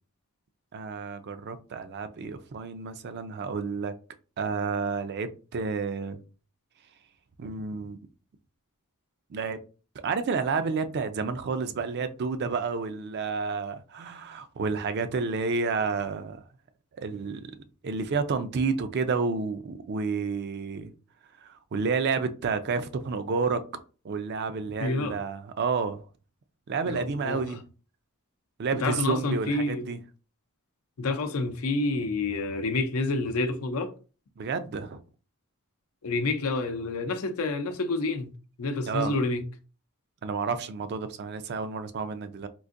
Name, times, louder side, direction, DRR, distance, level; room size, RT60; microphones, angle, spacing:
voice 1, 0.7-3.9 4.4-6.2 7.4-8.0 9.3-9.6 10.0-16.4 17.0-17.5 17.8-20.9 21.4-26.0 26.7-27.6 28.6-30.0 34.4-35.0 38.9-39.1 40.2-42.5, right 4 dB, 50° right, 0.4 m, -30 dB
voice 2, 24.8-25.2 26.9-27.6 28.7-29.9 31.0-33.9 36.0-38.3 38.6-39.4, left 3 dB, 80° left, 0.6 m, -28 dB
3.8 x 2.5 x 2.5 m
head